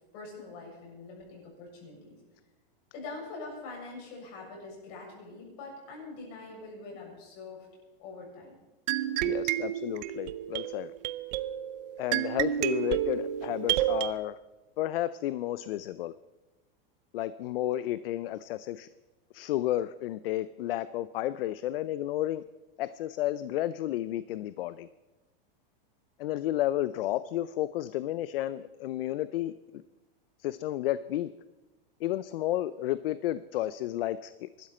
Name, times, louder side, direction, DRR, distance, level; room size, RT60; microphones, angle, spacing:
voice 1, 0.1-2.2 2.9-7.7 8.0-8.6, left 3 dB, 45° left, -1 dB, 7.4 m, -44 dB
sound 1, 8.9-14.1, right 12 dB, 45° right, 0.7 m, -30 dB
voice 2, 9.2-10.9 12.0-14.4 14.8-16.1 17.1-18.9 19.3-22.4 22.8-24.9 26.2-29.8 30.4-31.3 32.0-34.7, left 14 dB, 70° left, 15 dB, 0.6 m, -32 dB
23.0 x 13.0 x 4.3 m, 1.1 s
supercardioid pair, 155°, 29 cm